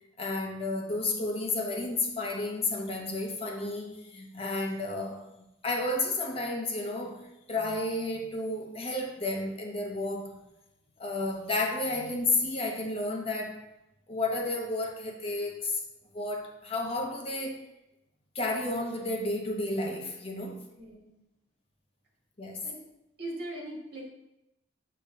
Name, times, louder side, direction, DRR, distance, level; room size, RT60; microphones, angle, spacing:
voice 1, 0.2-5.3 5.6-10.3 11.0-13.6 14.1-15.8 16.1-17.6 18.3-20.7 22.4-22.7, left 2 dB, 30° left, 1 dB, 0.8 m, -32 dB
voice 2, 20.8-21.2 22.6-22.8 23.2-24.0, right 1 dB, 55° right, -3 dB, 1.9 m, -40 dB
6.6 x 6.5 x 2.7 m, 0.88 s
head